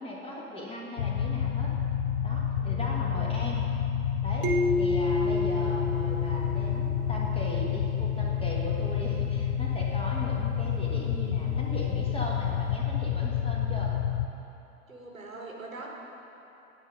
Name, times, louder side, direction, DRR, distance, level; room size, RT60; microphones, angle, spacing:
voice 1, 0.0-1.7 2.2-3.8 4.2-13.9, left 1 dB, 15° left, -3 dB, 1.4 m, -38 dB
sound 1, 1.0-14.3, left 8 dB, 80° left, 0.5 m, -29 dB
voice 2, 2.5-3.2 14.9-15.9, right 2 dB, 85° right, -1 dB, 1.2 m, -43 dB
sound 2, 4.4-7.0, left 2 dB, 30° right, 0.8 m, -29 dB
9.3 x 4.2 x 6.5 m, 3.0 s
figure-of-eight pair, 85°, 40 cm